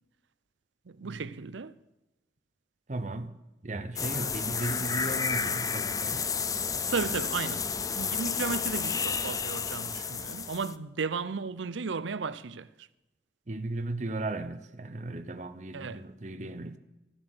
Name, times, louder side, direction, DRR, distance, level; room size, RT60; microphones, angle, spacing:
voice 1, 0.9-1.7 4.1-4.6 6.9-12.7 15.7-16.0, right 4 dB, 85° right, 0.6 m, -35 dB
voice 2, 2.9-3.4 3.6-6.3 13.5-16.8, right 2 dB, 40° right, 0.8 m, -36 dB
sound 1, 4.0-10.7, left 6 dB, 20° left, 0.4 m, -31 dB
14.0 x 7.5 x 7.9 m
head